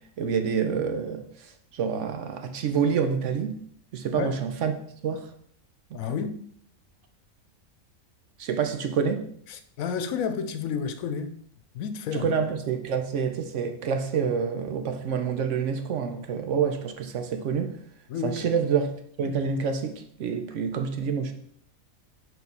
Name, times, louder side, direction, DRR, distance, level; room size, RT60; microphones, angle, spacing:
voice 1, 0.2-3.6 3.9-4.7 5.0-5.3 5.9-6.0 8.4-9.2 12.1-17.8 18.2-18.9 19.2-21.3, right 6 dB, 65° right, 1.0 m, -27 dB
voice 2, 5.9-6.4 9.5-11.4 11.7-12.3 18.1-18.6, left 6 dB, 80° left, 1.0 m, -31 dB
4.6 x 4.2 x 5.3 m
omnidirectional pair, 1.4 m